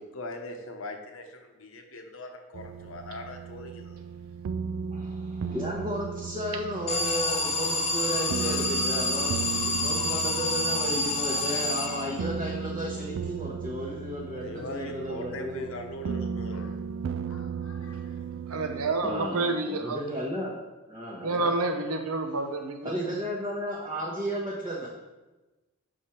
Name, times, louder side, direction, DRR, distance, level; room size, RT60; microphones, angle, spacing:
voice 1, 0.0-4.0 14.3-16.8 17.3-18.2, left 1 dB, 65° left, 4 dB, 0.9 m, -41 dB
sound 1, 2.5-18.9, right 6 dB, 60° right, 0.3 m, -36 dB
voice 2, 4.9-15.7 17.8-18.0 19.0-20.6 20.9-21.5 22.8-24.9, equal, 20° right, -5 dB, 0.9 m, -34 dB
Alarm, 6.9-12.4, left 2 dB, 30° left, 0.7 m, -28 dB
voice 3, 18.5-20.0 21.2-22.9, right 2 dB, 80° right, 6 dB, 0.8 m, -29 dB
7.0 x 4.9 x 4.4 m, 1.1 s
head